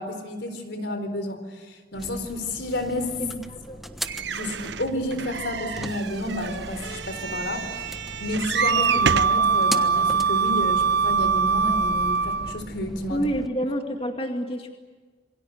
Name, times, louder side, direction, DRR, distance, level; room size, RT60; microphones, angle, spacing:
voice 1, 0.0-3.2 4.3-13.2, left 1 dB, 85° left, 9 dB, 4.1 m, -31 dB
sound 1, 1.9-13.5, equal, ahead, 1.2 m, -39 dB
voice 2, 3.2-3.8 13.1-14.7, equal, 35° left, 3 dB, 2.3 m, -28 dB
sound 2, 4.1-9.4 10.1-10.2 10.5-10.6, right 7 dB, 90° right, 0.8 m, -30 dB
Wind instrument woodwind instrument, 8.5-12.6, right 5 dB, 60° right, 1.0 m, -22 dB
27.5 x 23.0 x 8.1 m, 1.4 s
head